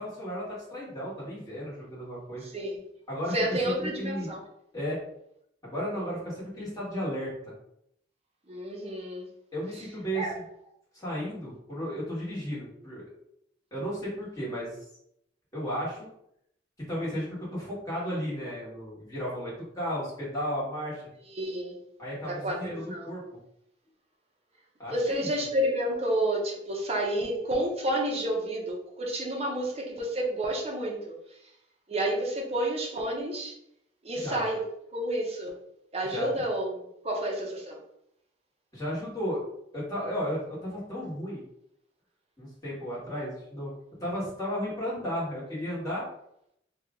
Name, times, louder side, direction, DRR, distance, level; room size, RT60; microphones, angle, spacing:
voice 1, 0.0-2.4 3.1-3.3 3.8-4.3 4.7-5.0 5.6-7.3 9.5-10.2 10.9-13.0 13.7-14.8 15.5-16.1 16.9-21.0 22.0-23.2 24.8-25.3 34.1-34.5 36.1-36.3 38.7-39.4 39.7-41.4 42.4-43.7 44.0-46.0, equal, 20° left, -7 dB, 1.4 m, -34 dB
voice 2, 2.4-2.8 3.3-4.4 8.5-9.3 10.1-10.3 21.4-21.8 22.3-23.1 24.9-31.1 31.9-33.5 34.0-34.6 34.9-35.6 35.9-37.8, right 1 dB, 35° right, -1 dB, 0.7 m, -30 dB
2.9 x 2.4 x 3.6 m, 0.76 s
head